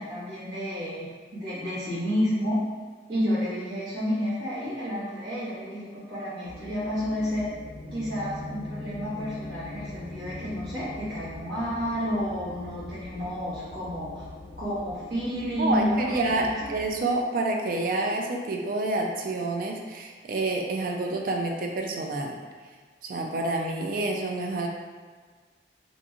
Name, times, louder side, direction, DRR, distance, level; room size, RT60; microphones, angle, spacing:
voice 1, 0.0-2.6 3.1-7.5 7.9-14.3 14.6-16.2 16.5-16.7, equal, 65° right, -11 dB, 1.3 m, -30 dB
sound 1, 6.4-17.0, left 2 dB, 75° left, 0.4 m, -42 dB
voice 2, 15.6-22.4 23.0-24.7, right 2 dB, 50° right, 1 dB, 0.3 m, -28 dB
2.9 x 2.5 x 2.4 m, 1.5 s
head